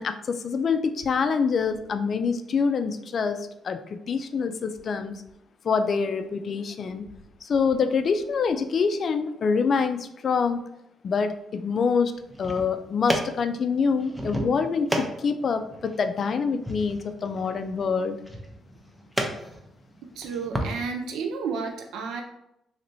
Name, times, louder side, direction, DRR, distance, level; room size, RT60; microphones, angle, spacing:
voice 1, 0.0-5.2 5.6-7.1 7.4-10.6 11.0-12.1 12.4-18.2, left 5 dB, 55° left, 9 dB, 0.3 m, -26 dB
sound 1, 12.2-20.7, right 1 dB, 10° right, 0.6 m, -34 dB
voice 2, 20.2-22.2, right 5 dB, 80° right, 3 dB, 0.4 m, -31 dB
3.1 x 2.9 x 2.6 m, 0.82 s
cardioid pair, 75°, 0 cm